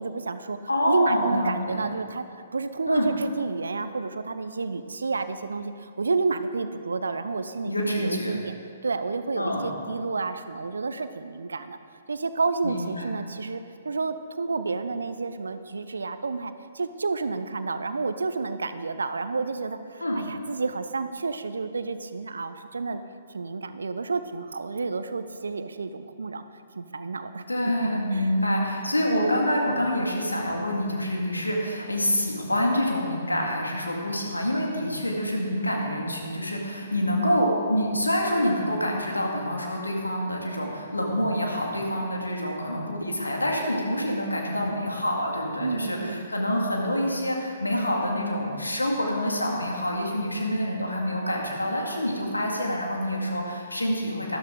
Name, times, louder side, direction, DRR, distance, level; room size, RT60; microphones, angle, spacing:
voice 1, 0.0-0.6 0.9-2.2 2.5-8.5 8.8-11.8 12.1-23.0 23.3-26.4 26.8-27.4 27.8-28.3 45.6-46.3, right 4 dB, 70° right, 11 dB, 0.6 m, -30 dB
voice 2, 0.7-1.8 2.9-3.1 7.7-8.4 9.4-9.7 12.6-13.1 20.0-20.2 27.5-54.4, equal, 80° left, -1 dB, 2.0 m, -26 dB
13.0 x 11.5 x 3.7 m, 2.3 s
figure-of-eight pair, 125°, 0 cm